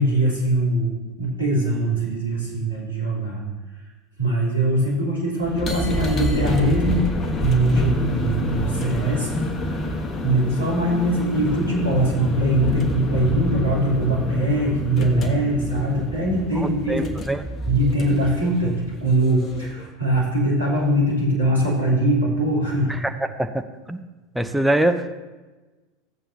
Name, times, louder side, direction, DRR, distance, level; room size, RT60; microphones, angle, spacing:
voice 1, 0.0-3.4 4.2-7.1 7.4-9.4 10.2-17.1 17.7-22.9, right 1 dB, 85° right, -6 dB, 3.2 m, -22 dB
sound 1, 5.4-19.8, left 1 dB, 30° left, 1.2 m, -28 dB
voice 2, 16.6-17.4 22.9-23.1 23.4-24.0 24.3-25.2, right 1 dB, 5° right, 7 dB, 0.6 m, -24 dB
14.5 x 7.9 x 2.7 m, 1.2 s
figure-of-eight pair, 80°, 0 cm